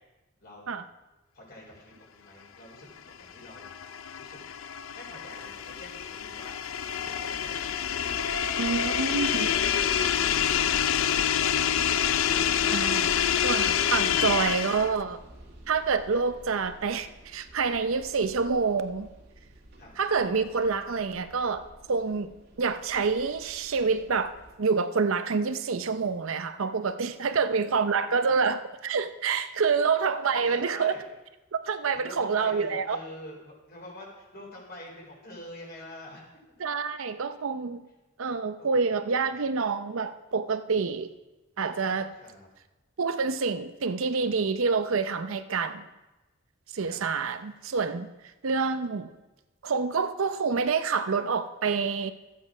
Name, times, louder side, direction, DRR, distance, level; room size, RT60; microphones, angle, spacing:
voice 1, 0.4-0.8 1.3-3.7 4.2-4.4 4.9-5.5 5.8-6.6 6.9-8.2 8.6-9.5 19.8-19.9 27.3-27.5 27.9-28.4 30.4-31.0 31.9-36.2 38.6-38.7 39.2-39.4 42.2-42.5 46.8-47.0, left 1 dB, 50° left, 3.9 m, -47 dB
sound 1, 3.1-15.0, left 9 dB, 65° left, 0.4 m, -27 dB
voice 2, 8.6-9.5 12.7-13.1 13.4-15.2 15.7-19.1 20.0-22.3 22.6-30.9 31.5-33.0 36.6-37.8 38.2-41.1 41.6-42.1 43.0-45.8 46.7-48.1 48.4-49.1 49.6-52.1, right 5 dB, 70° right, 0.6 m, -27 dB
sound 2, 14.7-24.6, right 1 dB, 50° right, 1.8 m, -52 dB
13.0 x 8.4 x 4.9 m
head